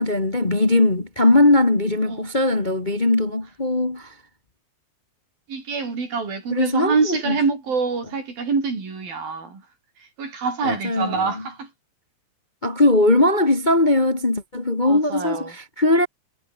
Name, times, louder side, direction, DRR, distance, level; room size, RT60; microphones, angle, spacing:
voice 1, 0.0-4.1 6.5-7.4 10.6-11.5 12.6-16.1, left 2 dB, 50° left, 0.5 m, -20 dB
voice 2, 5.5-9.6 10.2-11.7 14.8-15.5, right 4 dB, 60° right, 8.2 m, -25 dB
omnidirectional pair, 4.6 m